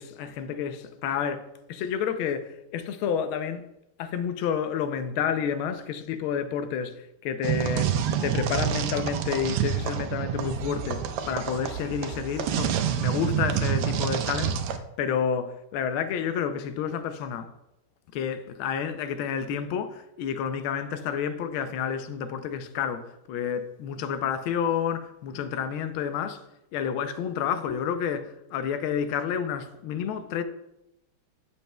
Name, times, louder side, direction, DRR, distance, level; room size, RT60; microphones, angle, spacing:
voice 1, 0.0-1.4 1.7-3.6 4.0-6.9 7.2-7.9 8.2-12.7 13.0-14.6 15.0-17.5 18.1-26.4 26.7-30.4, left 7 dB, 75° left, 1.3 m, -30 dB
sound 1, 7.4-14.8, right 8 dB, 80° right, 1.5 m, -28 dB
8.1 x 6.9 x 2.2 m
omnidirectional pair, 2.4 m